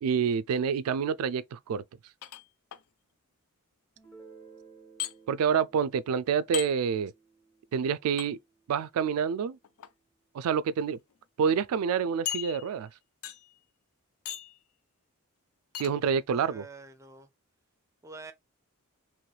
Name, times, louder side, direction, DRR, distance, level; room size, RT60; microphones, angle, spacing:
voice 1, 0.0-1.8 5.3-7.1 7.7-8.4 8.7-9.6 10.3-11.0 11.4-12.9 15.8-16.6, right 7 dB, 80° right, 0.3 m, -27 dB
sound 1, 2.2-2.8 5.0-5.1 6.5-6.7 8.2-8.3 9.6-9.9 10.7-10.8 11.1-11.2 12.3-12.9 13.2-13.6 14.3-14.6 15.7-15.9, left 12 dB, 75° left, 0.4 m, -36 dB
Guitar, 4.0-9.5, right 4 dB, 10° left, 0.9 m, -56 dB
voice 2, 16.3-17.3 18.0-18.3, right 3 dB, 15° right, 0.4 m, -46 dB
3.1 x 3.0 x 2.2 m
head